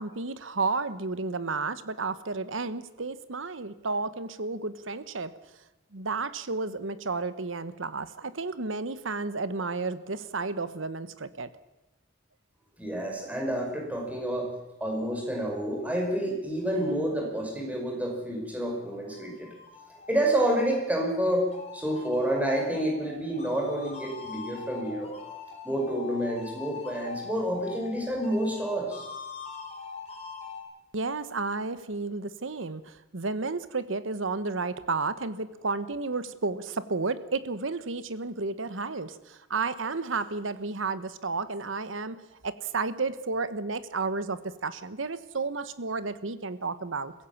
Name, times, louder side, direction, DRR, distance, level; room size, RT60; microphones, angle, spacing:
voice 1, 0.0-5.3 5.9-11.5 30.9-47.1, right 3 dB, 85° right, 14 dB, 1.2 m, -32 dB
voice 2, 12.8-14.5 14.8-19.5 20.1-25.1 25.6-29.0, right 1 dB, 10° right, 0 dB, 5.5 m, -29 dB
sound 1, 18.8-30.6, left 5 dB, 35° left, 4.8 m, -43 dB
22.5 x 16.0 x 7.3 m, 0.99 s
head